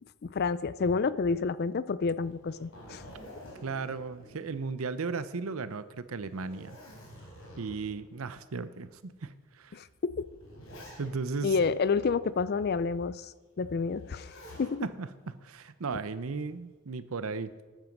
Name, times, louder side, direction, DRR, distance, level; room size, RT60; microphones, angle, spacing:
voice 1, 0.2-3.0 9.7-10.1 11.4-14.9, left 4 dB, 45° left, 17 dB, 0.4 m, -29 dB
Zipper (clothing), 2.2-5.2 5.5-5.6 6.2-8.0 8.8-8.9 9.9-11.4 13.9-14.8 16.1-16.6, equal, 60° left, 3.8 m, -49 dB
voice 2, 3.6-6.8 7.6-9.8 11.0-11.5 15.0-17.5, right 4 dB, 70° right, 14 dB, 0.6 m, -36 dB
13.0 x 9.1 x 5.3 m, 1.3 s
head